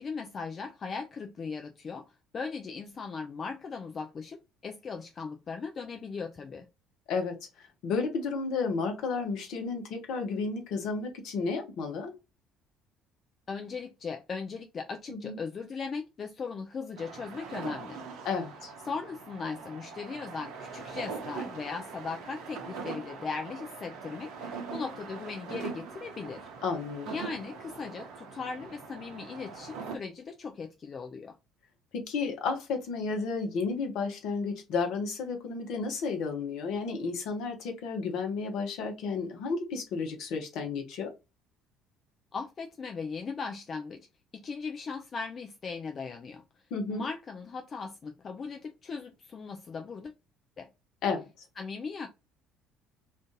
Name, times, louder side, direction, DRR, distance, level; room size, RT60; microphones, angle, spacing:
voice 1, 0.0-2.1 2.3-6.7 13.5-18.0 18.9-26.5 27.1-31.3 42.3-44.0 44.3-46.4 46.9-50.1 50.6-50.7 51.6-52.1, left 5 dB, 40° left, 0.4 m, -38 dB
voice 2, 7.1-12.1 15.1-15.4 18.2-18.7 26.6-27.1 31.9-41.1 46.7-47.1 51.0-51.3, left 4 dB, 60° left, 0.9 m, -32 dB
sound 1, 17.0-30.0, right 5 dB, 65° right, 0.7 m, -42 dB
2.5 x 2.5 x 3.6 m
figure-of-eight pair, 55°, 0 cm